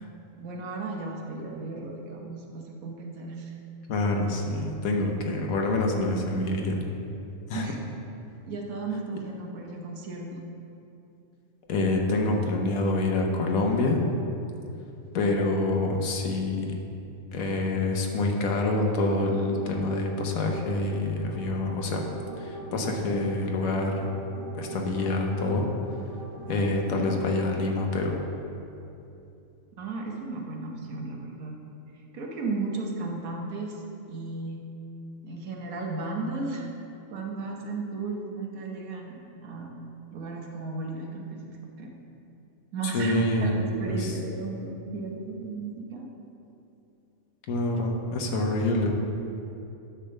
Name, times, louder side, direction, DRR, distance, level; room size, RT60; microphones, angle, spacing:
voice 1, 0.4-3.5 7.5-7.8 8.5-10.4 29.8-31.6 32.1-33.8 34.1-34.6 35.2-36.7 37.1-39.7 40.1-41.9 42.7-46.1, right 3 dB, 85° right, 0 dB, 1.4 m, -34 dB
voice 2, 3.9-6.8 7.5-7.6 11.7-14.0 15.1-16.8 17.3-22.0 22.4-23.9 24.5-25.7 26.5-28.1 42.9-43.6 43.9-44.1 47.5-48.9, left 2 dB, 80° left, 2 dB, 1.3 m, -26 dB
sound 1, 18.6-27.9, right 2 dB, 25° right, 0.9 m, -41 dB
9.7 x 3.4 x 6.5 m, 2.8 s
omnidirectional pair, 1.4 m